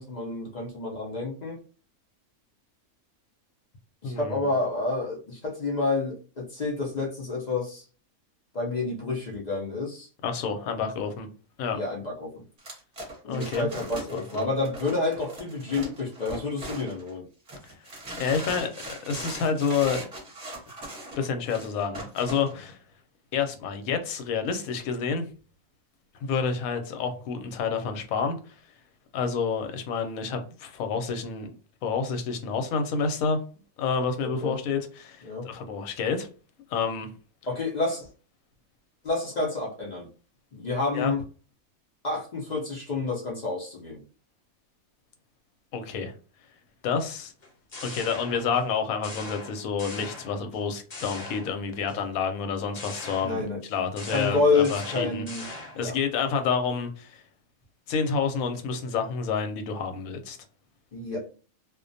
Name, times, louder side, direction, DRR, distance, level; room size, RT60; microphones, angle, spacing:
voice 1, 0.0-1.6 4.0-7.8 8.5-10.1 11.7-12.4 13.2-17.3 34.2-34.6 35.2-35.5 37.5-38.1 39.0-40.1 40.5-41.2 42.0-44.0 53.2-53.6 54.1-55.4 55.7-55.9 60.9-61.3, left 3 dB, 65° left, 0.4 m, -29 dB
voice 2, 4.0-4.4 10.2-11.3 11.6-11.8 13.2-13.7 14.3-14.5 18.2-20.1 21.2-22.8 23.3-25.2 26.2-28.5 29.1-31.5 31.8-33.4 33.8-36.3 36.7-37.1 40.9-41.1 45.7-46.1 46.8-47.3 47.8-53.4 53.7-55.3 55.5-57.2 57.9-60.4, left 5 dB, 85° left, 1.0 m, -29 dB
sound 1, 12.6-17.1 17.5-22.5, right 1 dB, 30° right, 0.9 m, -40 dB
sound 2, 47.4-48.7 49.0-50.6 50.9-51.9 52.7-55.9, left 2 dB, 35° left, 0.7 m, -41 dB
2.4 x 2.1 x 2.5 m
omnidirectional pair, 1.5 m